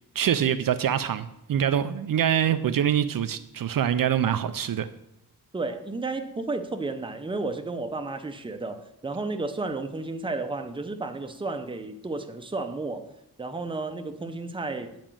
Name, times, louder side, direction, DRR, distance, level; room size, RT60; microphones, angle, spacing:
voice 1, 0.2-4.9, right 9 dB, 65° right, 11 dB, 0.5 m, -25 dB
voice 2, 5.5-13.1 13.4-14.9, right 3 dB, 15° right, 7 dB, 0.6 m, -32 dB
9.0 x 5.0 x 7.5 m, 0.81 s
wide cardioid pair, 160°, 37 cm